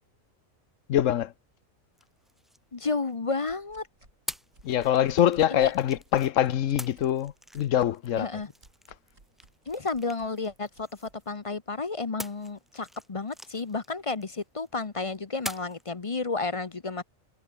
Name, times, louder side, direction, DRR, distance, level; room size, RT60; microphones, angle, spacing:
voice 1, 0.9-1.3 4.6-8.3, left 11 dB, 75° left, 1.1 m, -24 dB
sound 1, 1.9-3.4 4.3-6.3 6.8-11.5 12.2-14.7 15.4-15.9, equal, ahead, 1.2 m, -45 dB
voice 2, 2.7-3.9 5.5-5.7 8.2-8.5 9.7-10.9 11.3-17.0, left 3 dB, 30° left, 0.8 m, -32 dB
sound 2, 3.4-11.2, right 2 dB, 80° right, 5.2 m, -57 dB
omnidirectional pair, 1.4 m